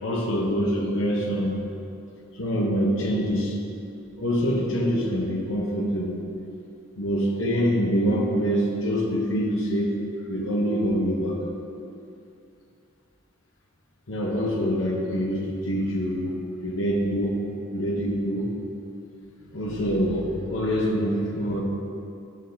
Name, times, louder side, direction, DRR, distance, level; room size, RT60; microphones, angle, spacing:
voice 1, 0.0-1.6 2.3-3.6 4.2-6.2 7.0-10.0 10.3-11.4 14.1-17.4 17.7-18.6 19.5-21.6, equal, 75° left, -1 dB, 0.9 m, -25 dB
9.2 x 3.9 x 3.4 m, 2.6 s
head